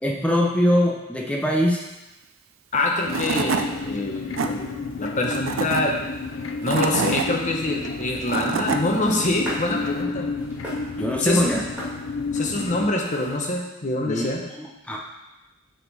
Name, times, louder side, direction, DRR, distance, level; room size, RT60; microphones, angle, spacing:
voice 1, 0.0-1.8 11.0-11.6 14.0-14.3 14.6-15.0, equal, 5° left, -2 dB, 0.7 m, -22 dB
voice 2, 2.7-5.9 6.6-10.3 11.2-11.6 12.3-14.4, left 2 dB, 40° left, 0 dB, 1.0 m, -25 dB
Tools / Wood, 2.7-2.8 3.1-3.7 4.1-4.5 5.2-5.8 6.4-7.3 8.0-8.8, right 5 dB, 80° right, 0.5 m, -25 dB
sound 1, 3.0-12.9, left 4 dB, 70° left, 0.5 m, -31 dB
trying to break an ice on the pond, 5.5-13.6, equal, 10° right, 2.1 m, -42 dB
7.4 x 3.8 x 4.1 m, 1.0 s
head